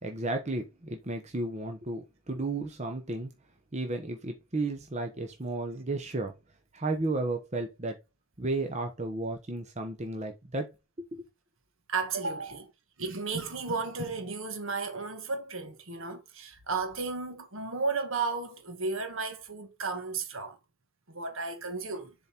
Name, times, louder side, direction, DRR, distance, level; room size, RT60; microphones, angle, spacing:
voice 1, 0.0-3.3 3.7-6.3 6.7-8.0 8.4-10.7 11.0-11.2, right 2 dB, 30° right, 0.9 m, -33 dB
voice 2, 11.9-12.7 13.0-20.6 21.1-22.1, right 4 dB, 65° right, 1.5 m, -34 dB
7.1 x 4.0 x 4.4 m
head